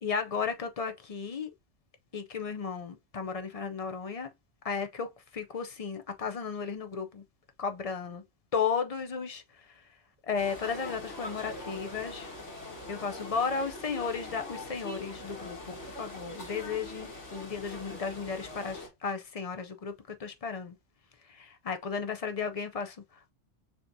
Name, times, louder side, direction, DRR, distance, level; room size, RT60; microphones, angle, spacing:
voice 1, 0.0-1.5 2.1-4.3 4.6-7.2 7.6-8.2 8.5-9.8 10.2-12.3 12.9-20.7 21.2-23.3, left 5 dB, 45° left, 0.5 m, -34 dB
sound 1, 10.3-18.9, left 2 dB, 80° left, 2.0 m, -42 dB
6.6 x 2.8 x 2.6 m
omnidirectional pair, 1.2 m